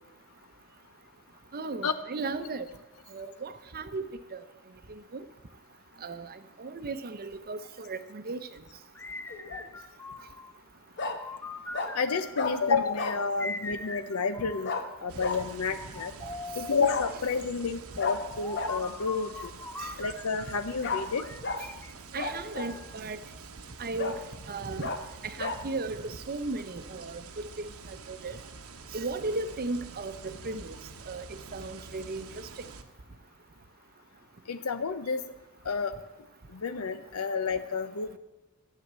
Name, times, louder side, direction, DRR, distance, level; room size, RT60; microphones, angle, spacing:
voice 1, 1.5-2.7 3.1-4.1 4.3-4.4 4.9-5.2 6.0-8.5 16.2-16.3 19.8-20.0 22.1-23.2 23.8-24.2 24.5-24.9 25.2-28.4 28.9-30.7 31.1-32.5, right 3 dB, 45° right, 11 dB, 0.8 m, -36 dB
sound 1, 8.9-10.6 11.1-12.7 13.4-15.0 15.7-16.9 18.0-20.7 21.2-23.0, left 3 dB, 10° left, 0.6 m, -42 dB
Bark, 9.3-9.7 11.0-11.2 11.7-11.9 12.3-12.5 13.0-13.2 14.6-14.8 15.2-15.4 16.8-17.1 18.0-18.2 18.5-18.7 20.8-21.0 21.4-21.6 22.2-22.8 23.3-23.4 24.0-24.2 24.8-25.0 25.4-25.6, left 4 dB, 55° left, 1.3 m, -32 dB
voice 2, 11.9-14.7 15.0-16.1 16.5-19.3 20.0-21.2 34.5-35.3 35.6-36.0 36.5-38.2, left 5 dB, 75° left, 10 dB, 0.7 m, -30 dB
sound 2, 15.1-32.8, right 4 dB, 80° right, 1.1 m, -47 dB
13.0 x 8.5 x 7.4 m, 1.1 s
head